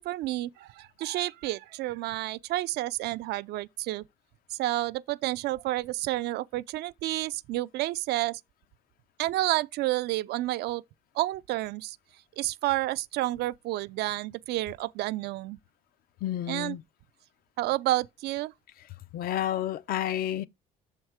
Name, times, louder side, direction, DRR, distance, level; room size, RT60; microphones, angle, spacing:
voice 1, 0.0-4.0 4.5-8.4 9.2-10.8 11.1-12.0 12.4-15.6 16.5-16.8 17.6-18.5, right 17 dB, 75° right, 0.4 m, -30 dB
voice 2, 16.2-16.8 19.1-20.5, left 11 dB, 60° left, 0.5 m, -30 dB
6.3 x 4.5 x 4.7 m
cardioid pair, 110°, 17 cm